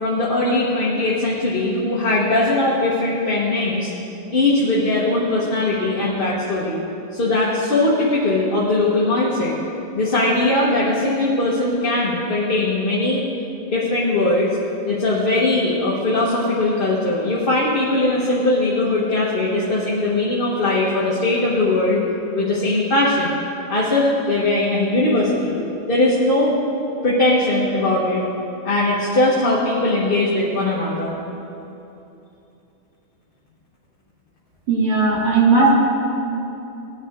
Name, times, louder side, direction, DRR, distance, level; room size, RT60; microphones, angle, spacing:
voice 1, 0.0-3.9 4.3-6.8 7.1-9.6 9.9-13.2 13.7-14.5 14.8-22.0 22.3-23.3 23.7-25.6 25.9-26.5 27.0-28.2 28.6-31.1 35.6-35.7, left 2 dB, 30° left, -7 dB, 1.5 m, -20 dB
voice 2, 34.7-35.7, right 4 dB, 70° right, -5 dB, 3.2 m, -17 dB
19.5 x 10.5 x 3.7 m, 2.9 s
omnidirectional pair, 2.0 m